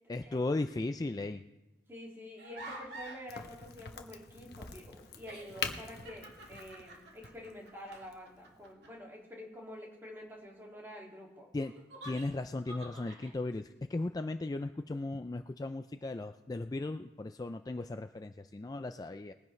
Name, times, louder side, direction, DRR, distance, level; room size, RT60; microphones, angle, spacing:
voice 1, 0.1-1.4 11.5-11.7 12.0-19.3, left 2 dB, 20° left, 8 dB, 0.3 m, -36 dB
voice 2, 1.9-11.5, equal, 15° right, -2 dB, 2.4 m, -48 dB
sound 1, 2.4-3.3 4.7-4.8 5.2-8.9 11.6-13.3, right 1 dB, 75° right, 2.2 m, -49 dB
Crack, 3.3-8.7, left 6 dB, 60° left, 1.0 m, -44 dB
21.0 x 10.5 x 3.2 m, 1.1 s
head